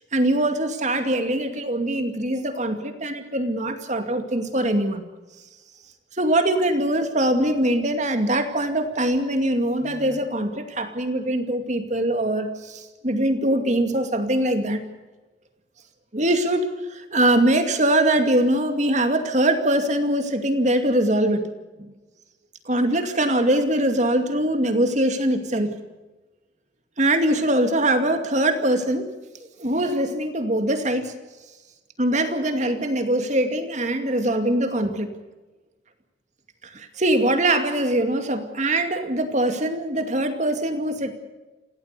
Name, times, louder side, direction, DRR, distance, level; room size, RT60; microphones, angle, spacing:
voice 1, 0.1-5.0 6.2-14.8 16.1-21.5 22.7-25.7 27.0-29.1 29.6-31.1 32.0-35.1 36.7-41.1, right 1 dB, 40° right, 7 dB, 2.4 m, -22 dB
27.5 x 17.0 x 6.8 m, 1.2 s
head